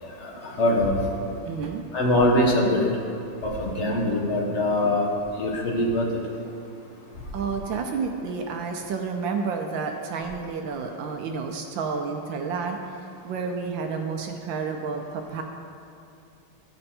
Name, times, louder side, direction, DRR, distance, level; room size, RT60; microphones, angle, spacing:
voice 1, 0.0-0.3 0.6-1.0 1.9-2.8 3.6-5.1 5.4-6.0, left 1 dB, 40° left, -2 dB, 1.2 m, -22 dB
voice 2, 1.4-1.8 7.3-13.0 13.2-15.4, right 5 dB, 75° right, 3 dB, 1.3 m, -30 dB
13.0 x 4.4 x 4.2 m, 2.5 s
omnidirectional pair, 2.3 m